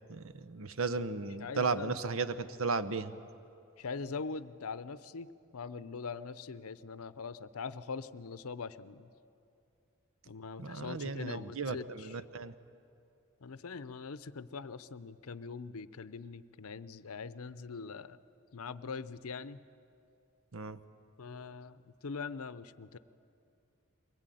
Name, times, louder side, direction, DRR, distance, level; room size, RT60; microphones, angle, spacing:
voice 1, 0.1-3.1 10.6-12.5 20.5-20.8, right 4 dB, 70° right, 13 dB, 0.9 m, -35 dB
voice 2, 1.4-1.9 3.8-9.1 10.3-12.1 13.4-18.2 18.5-19.6 21.2-23.0, left 4 dB, 85° left, 15 dB, 0.7 m, -42 dB
23.0 x 20.0 x 9.2 m, 2.6 s
head